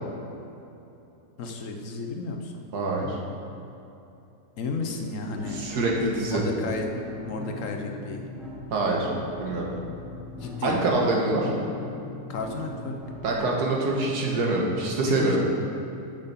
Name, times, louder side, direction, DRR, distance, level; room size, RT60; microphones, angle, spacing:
voice 1, 1.4-2.5 4.6-5.6 6.3-8.2 10.4-10.8 12.3-13.0 15.1-15.4, left 4 dB, 60° left, 3 dB, 1.0 m, -32 dB
voice 2, 2.7-3.2 5.5-6.4 8.7-9.1 9.4-9.7 10.6-11.5 13.2-15.4, right 2 dB, 85° right, -1 dB, 1.8 m, -25 dB
sound 1, 5.4-13.4, left 3 dB, ahead, 0.7 m, -40 dB
7.1 x 6.7 x 5.7 m, 2.8 s
omnidirectional pair, 1.7 m